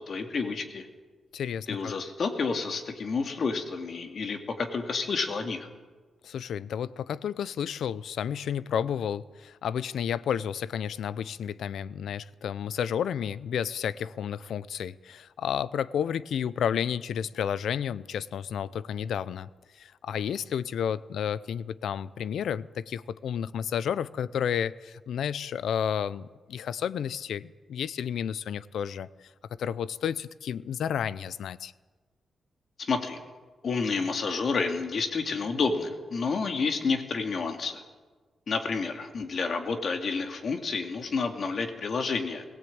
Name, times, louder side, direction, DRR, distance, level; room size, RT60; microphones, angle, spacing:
voice 1, 0.1-0.8 1.7-5.7 32.8-33.2 33.6-37.8 38.5-42.4, left 4 dB, 50° left, 5 dB, 2.5 m, -30 dB
voice 2, 1.3-1.9 6.2-19.5 19.8-29.3 29.6-31.7, left 8 dB, 85° left, 18 dB, 0.6 m, -31 dB
20.5 x 18.0 x 8.8 m, 1.4 s
wide cardioid pair, 125°, 0 cm